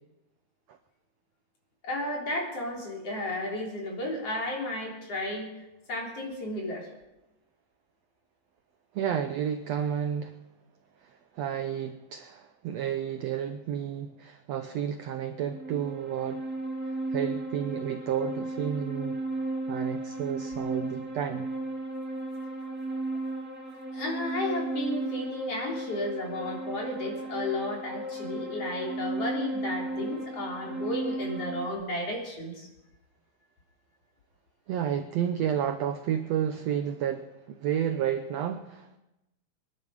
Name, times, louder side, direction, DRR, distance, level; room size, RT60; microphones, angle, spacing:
voice 1, 1.8-5.5 5.9-6.9 23.9-32.7, left 1 dB, 45° left, 4.3 m, -33 dB
voice 2, 8.9-10.4 11.0-16.4 16.9-19.2 19.7-21.5 34.7-39.0, right 9 dB, 90° right, 1.4 m, -31 dB
sound 1, 15.3-31.7, right 2 dB, 10° right, 0.6 m, -35 dB
25.5 x 11.0 x 4.9 m
omnidirectional pair, 4.0 m